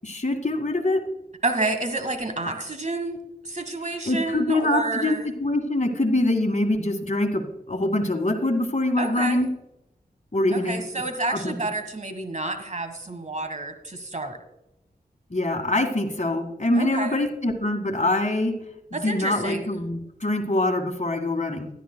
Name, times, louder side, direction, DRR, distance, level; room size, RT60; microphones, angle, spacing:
voice 1, 0.0-1.0 4.0-9.5 10.3-10.8 11.3-11.6 15.3-18.5 18.9-21.7, left 1 dB, 50° left, 5 dB, 1.8 m, -24 dB
voice 2, 1.4-5.2 9.0-9.4 10.5-14.4 16.7-17.2 18.9-19.7, right 2 dB, 50° right, 8 dB, 1.4 m, -29 dB
16.0 x 12.0 x 2.2 m, 0.88 s
wide cardioid pair, 45°, 16 cm